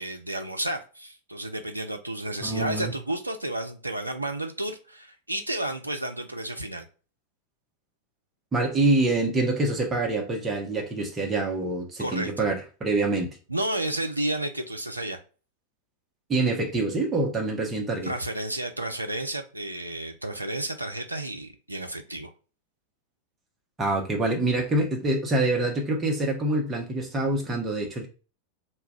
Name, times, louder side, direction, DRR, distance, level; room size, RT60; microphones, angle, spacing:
voice 1, 0.0-6.8 12.0-12.4 13.5-15.2 18.0-22.3, right 1 dB, 85° right, 0.4 m, -31 dB
voice 2, 2.4-2.9 8.5-13.3 16.3-18.1 23.8-28.1, right 2 dB, 20° right, 0.8 m, -26 dB
2.3 x 2.1 x 3.4 m
figure-of-eight pair, 90°, 0 cm